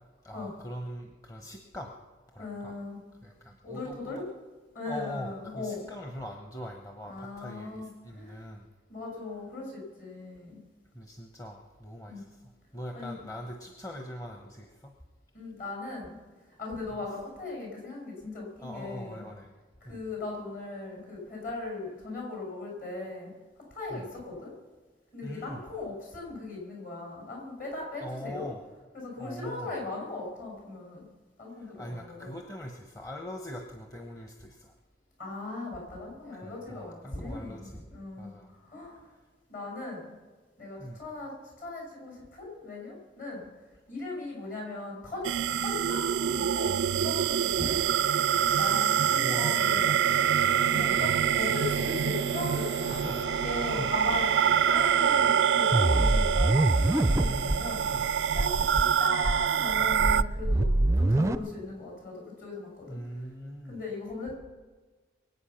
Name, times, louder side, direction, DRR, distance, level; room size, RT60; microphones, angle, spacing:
voice 1, 0.2-1.9 2.3-2.8 3.2-4.3 4.8-8.7 10.9-12.4 12.7-14.9 16.9-17.0 18.6-19.5 19.8-20.0 23.9-24.0 25.2-25.6 28.0-28.6 29.2-29.8 31.6-34.7 36.4-37.9 38.2-38.5 40.8-41.0 49.2-50.0 50.7-51.8 52.9-53.2 53.6-53.9 57.2-58.1 62.9-63.8, equal, 20° left, 3 dB, 1.0 m, -41 dB
voice 2, 2.4-3.0 3.6-4.2 4.7-5.8 7.0-8.4 8.9-10.6 12.1-12.2 12.9-13.2 15.3-16.2 16.6-19.2 19.8-23.3 23.7-24.5 25.1-28.5 28.9-31.0 31.4-32.3 35.2-39.0 39.5-40.1 40.6-43.5 43.9-45.3 45.6-47.8 48.5-49.9 50.7-52.9 53.3-54.3 54.6-57.8 58.3-60.7 61.0-63.0 63.6-64.3, left 3 dB, 50° left, -2 dB, 6.3 m, -38 dB
sound 1, 45.2-60.2, right 8 dB, 80° right, 0.3 m, -26 dB
sound 2, 50.0-58.6, left 1 dB, 70° left, 1.5 m, -43 dB
sound 3, 55.7-57.6 57.9-58.0 58.3-58.8 59.2-61.3, right 1 dB, 15° right, 0.4 m, -24 dB
23.5 x 8.7 x 5.8 m, 1.3 s
head